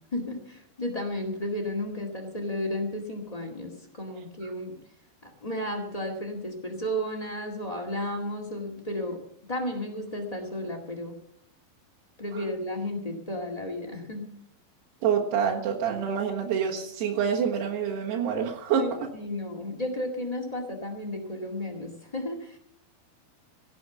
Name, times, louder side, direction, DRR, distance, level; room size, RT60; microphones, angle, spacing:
voice 1, 0.1-4.7 5.2-9.2 9.5-11.1 12.2-14.3 18.8-22.6, left 1 dB, 30° left, 3 dB, 0.6 m, -33 dB
voice 2, 15.0-18.9, right 7 dB, 90° right, -2 dB, 3.6 m, -26 dB
17.0 x 7.1 x 7.9 m, 0.69 s
omnidirectional pair, 4.6 m